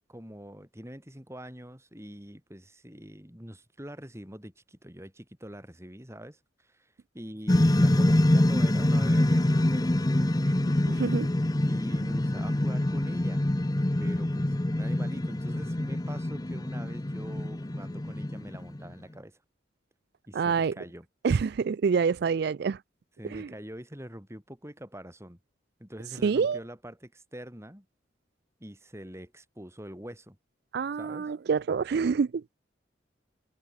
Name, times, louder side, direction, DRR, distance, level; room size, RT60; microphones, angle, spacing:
voice 1, 0.1-11.0 11.6-13.4 14.0-19.4 20.3-21.1 23.2-25.4 25.8-27.9 28.6-30.4 31.0-31.3, equal, 15° right, 7.1 m, -44 dB
sound 1, 7.5-18.9, left 1 dB, 20° left, 0.7 m, -25 dB
voice 2, 11.0-11.3 20.3-20.8 21.2-22.8 23.2-23.5 26.2-26.6 30.7-32.4, right 5 dB, 60° right, 0.4 m, -26 dB
head